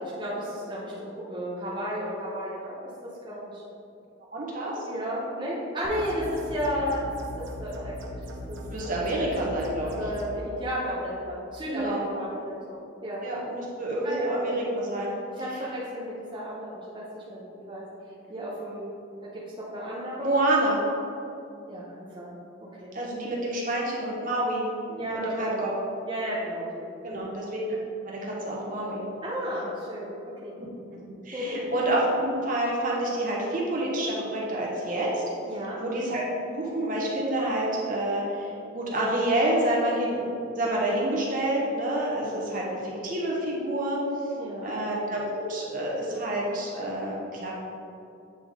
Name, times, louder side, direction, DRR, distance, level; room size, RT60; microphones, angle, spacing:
voice 1, 0.0-2.8 3.2-3.6 4.8-7.1 7.6-8.2 8.5-8.6 8.8-8.9 9.8-13.2 13.5-13.6 14.0-14.6 15.4-17.8 18.3-18.9 19.2-20.4 21.7-22.3 22.8-22.9 25.0-25.6 26.1-27.2 29.2-30.1 30.4-30.6 31.3-31.7 35.5-35.8 44.4-44.8, equal, 25° right, -8 dB, 0.8 m, -33 dB
voice 2, 4.3-4.8 8.7-10.0 11.7-12.0 13.2-15.1 20.2-20.8 22.9-25.7 27.0-27.8 28.0-29.0 31.2-35.2 35.8-36.2 36.5-44.0 44.6-47.5, right 1 dB, 40° right, -4 dB, 1.0 m, -28 dB
sound 1, 5.8-10.2, equal, 70° right, 0.7 m, -39 dB
8.1 x 3.5 x 3.6 m, 2.7 s
head